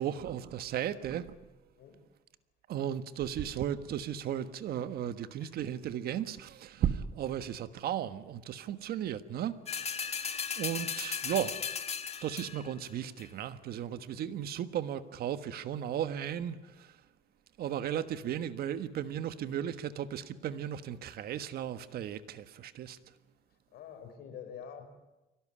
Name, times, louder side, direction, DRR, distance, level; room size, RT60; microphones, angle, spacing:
voice 1, 0.0-1.3 2.7-11.6 12.2-16.9 17.6-23.0, right 10 dB, 65° right, 1.4 m, -35 dB
sound 1, 9.7-12.7 13.2-13.3, left 6 dB, 40° left, 1.8 m, -36 dB
voice 2, 23.7-24.9, left 8 dB, 70° left, 4.9 m, -46 dB
24.0 x 18.0 x 10.0 m
cardioid pair, 110°, 17 cm